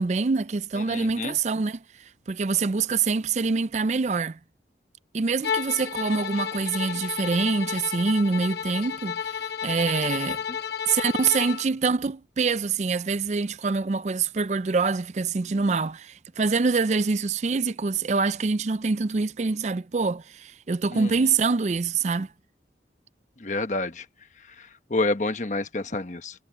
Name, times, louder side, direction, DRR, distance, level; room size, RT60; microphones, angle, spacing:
voice 1, 0.0-1.8 2.3-4.4 5.1-10.4 10.8-22.3, right 4 dB, 40° right, 0.4 m, -25 dB
voice 2, 0.9-1.3 20.9-21.1 23.4-24.0 24.9-26.3, left 2 dB, 45° left, 1.2 m, -28 dB
Bowed string instrument, 5.4-11.7, left 7 dB, 70° left, 1.2 m, -32 dB
head